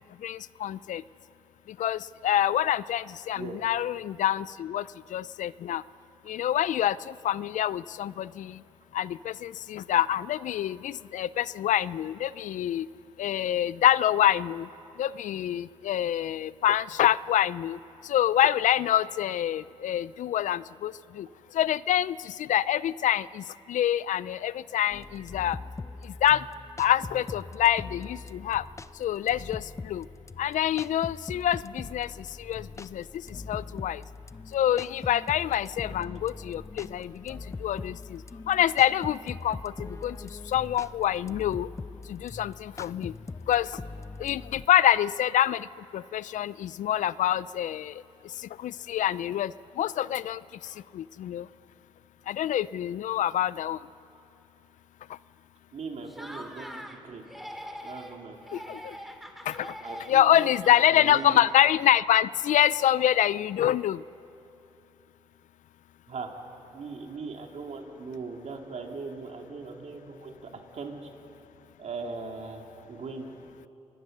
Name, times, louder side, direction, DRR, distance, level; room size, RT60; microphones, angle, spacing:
voice 1, 0.2-1.0 1.8-5.8 6.3-8.6 8.9-12.9 13.2-14.7 15.0-17.8 18.0-21.3 21.5-25.6 26.0-26.4 26.8-28.6 29.0-30.1 30.4-33.0 33.5-34.0 34.5-38.2 38.5-40.2 40.5-41.7 42.1-43.1 43.5-43.7 44.2-45.7 45.9-48.0 48.4-50.4 50.9-51.5 52.3-53.8 58.5-58.9 59.5-59.7 60.1-64.0, left 11 dB, 75° left, 19 dB, 0.4 m, -26 dB
sound 1, 24.9-44.7, left 3 dB, 25° left, 0.6 m, -42 dB
voice 2, 55.7-56.8 57.0-57.5 57.8-58.8 59.8-61.4 66.1-66.3 66.7-70.3 70.7-71.1 71.8-72.6 72.9-73.3, right 4 dB, 60° right, 2 dB, 2.8 m, -39 dB
Laughter, 56.1-57.0 57.3-58.2 58.5-61.8, equal, ahead, 2.4 m, -43 dB
25.0 x 20.5 x 6.6 m, 2.9 s
cardioid pair, 65°, 13 cm